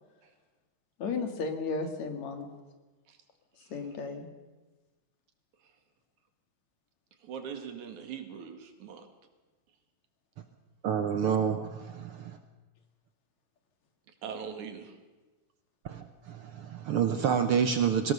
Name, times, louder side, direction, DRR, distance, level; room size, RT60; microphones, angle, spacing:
voice 1, 1.0-2.5 3.7-4.3, left 4 dB, 70° left, 5 dB, 3.4 m, -34 dB
voice 2, 7.2-9.1 14.2-14.9, right 7 dB, 80° right, 6 dB, 3.3 m, -41 dB
voice 3, 10.8-12.3 15.8-18.1, right 7 dB, 65° right, 8 dB, 1.5 m, -28 dB
21.5 x 18.0 x 6.8 m, 1.2 s
omnidirectional pair, 3.3 m